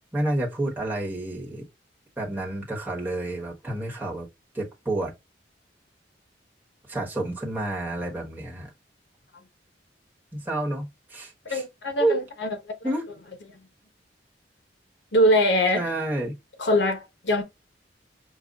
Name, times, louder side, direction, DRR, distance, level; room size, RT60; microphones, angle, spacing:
voice 1, 0.1-1.6 2.2-4.3 4.5-5.1 6.9-8.7 10.3-11.6 12.0-12.2 12.8-13.0 15.7-16.3, right 2 dB, 10° right, 1.3 m, -29 dB
voice 2, 11.5-12.5 15.1-15.9 16.6-17.4, equal, 80° left, 1.0 m, -22 dB
5.3 x 2.3 x 2.3 m
head